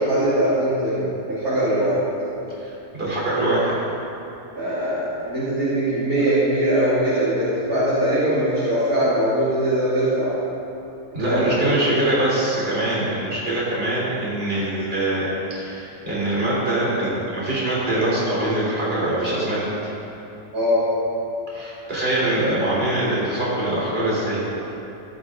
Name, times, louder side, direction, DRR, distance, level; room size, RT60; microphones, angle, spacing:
voice 1, 0.0-2.0 4.5-10.4 11.1-12.2 20.5-20.9, right 1 dB, 65° right, -10 dB, 2.8 m, -21 dB
voice 2, 2.6-3.7 11.1-19.7 21.5-24.4, right 1 dB, 35° right, -7 dB, 3.5 m, -23 dB
14.5 x 11.0 x 3.7 m, 2.9 s
omnidirectional pair, 1.7 m